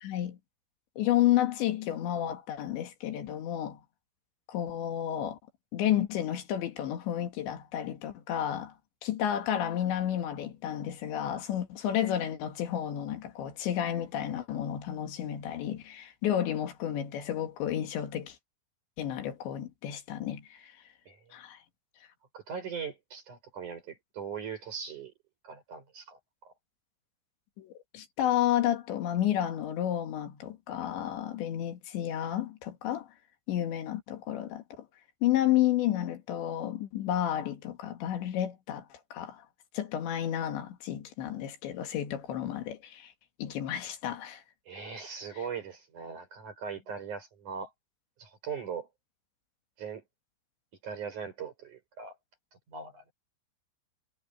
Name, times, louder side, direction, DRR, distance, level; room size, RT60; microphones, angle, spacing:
voice 1, 0.0-0.4 1.0-3.8 4.5-5.4 5.7-8.7 9.0-18.4 19.0-20.7 21.3-21.6 27.6-33.1 33.5-34.9 35.2-39.4 39.7-43.1 43.4-44.4, left 11 dB, 80° left, 4.3 m, -31 dB
voice 2, 22.3-25.1 25.4-26.5 44.7-47.7 48.2-48.9 49.8-50.0 50.8-52.2 52.7-53.0, right 6 dB, 45° right, 7.3 m, -40 dB
omnidirectional pair, 5.1 m